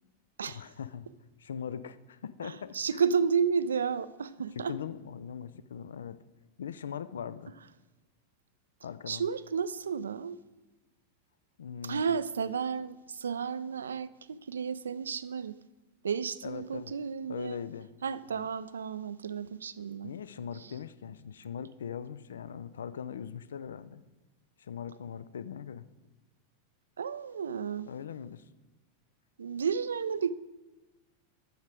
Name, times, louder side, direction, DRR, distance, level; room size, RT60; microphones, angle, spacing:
voice 1, 0.4-1.1 1.4-3.0 4.6-6.2 6.6-7.5 8.8-9.2 11.6-12.2 16.4-16.9 17.3-17.9 18.3-18.5 20.0-24.0 24.6-25.9 27.9-28.4, left 7 dB, 65° left, 0.3 m, -40 dB
voice 2, 2.4-4.7 9.1-10.4 11.8-15.6 16.0-17.6 18.0-20.1 20.6-20.7 27.0-27.9 29.4-30.3, right 6 dB, 70° right, 0.3 m, -32 dB
7.9 x 6.4 x 5.1 m
figure-of-eight pair, 90°, 0 cm